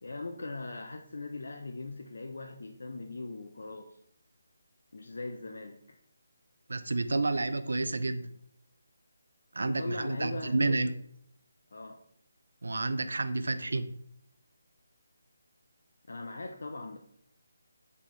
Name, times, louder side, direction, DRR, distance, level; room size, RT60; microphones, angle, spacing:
voice 1, 0.0-4.0 4.9-6.0 9.6-10.9 11.7-12.0 16.1-17.0, left 2 dB, 65° left, 4 dB, 0.4 m, -40 dB
voice 2, 6.7-8.3 9.5-10.9 12.6-14.0, right 2 dB, 80° right, 11 dB, 0.4 m, -30 dB
4.0 x 3.1 x 3.6 m, 0.70 s
hypercardioid pair, 175°, 0 cm